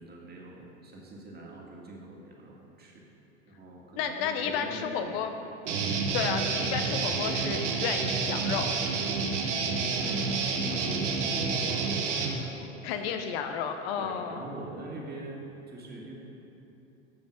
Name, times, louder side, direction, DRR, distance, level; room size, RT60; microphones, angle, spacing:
voice 1, 0.0-3.1 3.5-5.5 5.9-6.2 9.2-10.3 10.6-13.2 14.0-16.1, right 2 dB, 25° right, -2 dB, 2.0 m, -43 dB
voice 2, 4.0-5.3 6.1-8.7 12.8-14.4, left 7 dB, 55° left, 6 dB, 0.8 m, -32 dB
Guitar, 5.6-12.4, right 4 dB, 75° right, 1.1 m, -29 dB
13.0 x 5.3 x 5.1 m, 2.9 s
hypercardioid pair, 85°, 36 cm